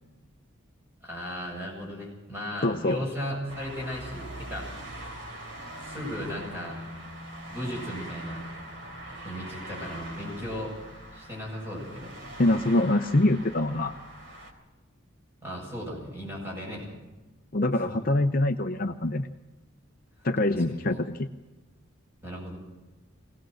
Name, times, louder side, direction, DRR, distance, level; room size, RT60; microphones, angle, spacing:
voice 1, 1.0-4.7 5.8-6.8 7.5-8.4 9.2-10.8 11.1-12.2 15.4-16.9 17.7-18.0 20.5-21.0 22.2-22.6, equal, 10° right, -3 dB, 7.9 m, -36 dB
voice 2, 2.6-3.0 12.4-14.0 17.5-19.3 20.2-21.3, left 1 dB, 45° left, 8 dB, 0.7 m, -24 dB
sound 1, 3.5-14.5, right 1 dB, 60° right, 3.4 m, -42 dB
23.0 x 18.0 x 6.4 m, 1.2 s
head